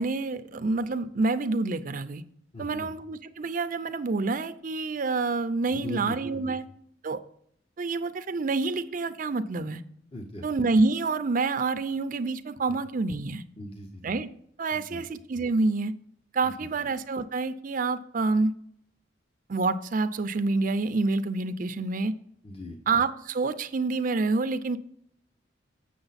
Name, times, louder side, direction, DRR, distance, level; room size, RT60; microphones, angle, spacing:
voice 1, 0.0-2.2 2.6-6.7 7.0-7.2 7.8-9.8 10.4-13.4 14.0-14.3 14.6-15.9 16.3-18.5 19.5-22.1 22.9-24.8, right 3 dB, 45° right, 11 dB, 0.5 m, -27 dB
voice 2, 2.5-2.9 5.7-6.6 10.1-10.4 13.6-14.2 14.7-15.0 16.4-16.5 16.8-16.9 22.4-22.8, left 1 dB, 30° left, 3 dB, 0.8 m, -40 dB
7.8 x 6.4 x 4.0 m, 0.67 s
head